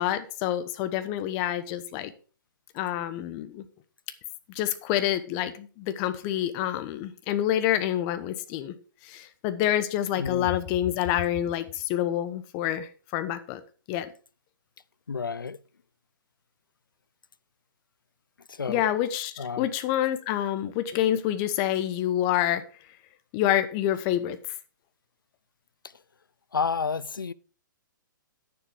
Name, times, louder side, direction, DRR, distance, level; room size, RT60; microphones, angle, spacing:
voice 1, 0.0-2.1 2.7-3.6 4.5-8.7 9.0-13.6 13.9-14.1 18.7-22.6 23.3-24.4, left 12 dB, 35° left, 1.1 m, -27 dB
voice 2, 10.2-10.5 15.1-15.6 18.5-18.8 19.4-19.7 26.5-27.3, left 5 dB, 85° left, 0.6 m, -30 dB
9.8 x 7.1 x 5.0 m
hypercardioid pair, 130°, 11 cm